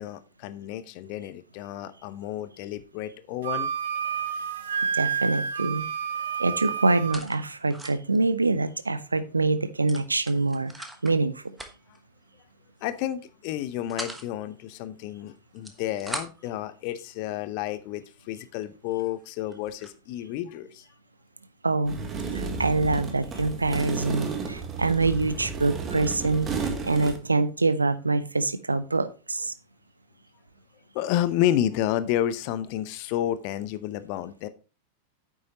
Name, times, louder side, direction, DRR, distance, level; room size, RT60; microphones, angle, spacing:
voice 1, 0.0-3.7 12.8-20.8 30.9-34.5, left 12 dB, 45° left, 14 dB, 0.8 m, -30 dB
Wind instrument woodwind instrument, 3.4-7.2, right 7 dB, 60° right, 0.9 m, -29 dB
sound 1, 4.4-4.7 5.0-5.8 6.1-8.2 8.6-8.7 8.9-9.1 9.9-11.2 11.5-12.0 12.8-13.1 13.5-14.3 15.4-16.5 17.3-17.4 18.0-18.1 18.6-18.7 18.9-20.0, right 1 dB, 5° right, 1.3 m, -41 dB
voice 2, 4.9-5.9 6.4-10.7 11.0-11.6 21.6-22.0 22.3-29.5, right 3 dB, 80° right, 14 dB, 0.6 m, -25 dB
sound 2, 21.8-27.2, right 4 dB, 25° right, 1.6 m, -32 dB
9.4 x 7.4 x 2.9 m, 0.33 s
figure-of-eight pair, 90°, 0 cm